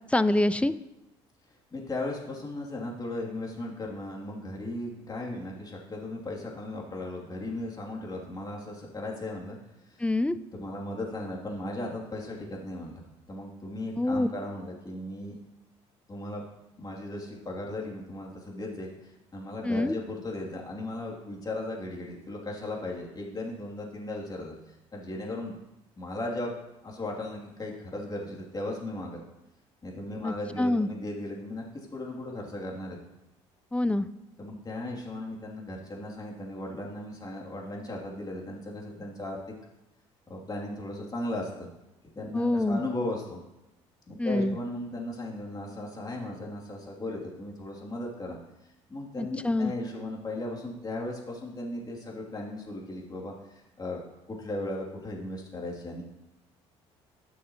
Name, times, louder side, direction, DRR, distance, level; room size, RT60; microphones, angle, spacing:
voice 1, 0.1-0.7 10.0-10.4 14.0-14.3 19.6-20.0 30.2-30.9 33.7-34.1 42.3-42.8 44.2-44.6 49.2-49.7, left 1 dB, 10° left, 14 dB, 0.4 m, -25 dB
voice 2, 1.7-9.6 9.8-10.0 10.5-15.4 16.1-16.4 16.8-24.5 24.9-25.6 26.0-26.5 26.8-29.2 29.8-33.0 34.4-39.4 40.3-41.7 42.1-43.4 44.1-48.4 48.9-54.0 54.3-56.0, left 1 dB, 25° left, -2 dB, 2.5 m, -36 dB
12.0 x 6.5 x 2.9 m, 0.95 s
hypercardioid pair, 65°, 14 cm